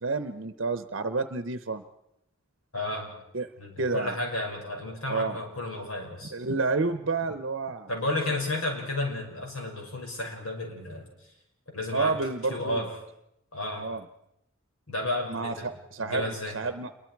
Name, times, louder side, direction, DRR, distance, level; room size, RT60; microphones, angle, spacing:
voice 1, 0.0-1.8 3.3-3.5 3.8-4.1 5.1-5.4 6.3-7.9 11.9-12.8 13.8-14.0 15.3-16.9, right 3 dB, 55° right, 10 dB, 0.8 m, -30 dB
voice 2, 2.7-3.2 3.6-6.3 7.9-11.3 11.7-12.2 12.5-12.9 13.5-13.9 14.9-15.7 16.0-16.6, left 2 dB, 80° left, 1 dB, 6.0 m, -32 dB
28.0 x 22.5 x 4.7 m, 0.82 s
head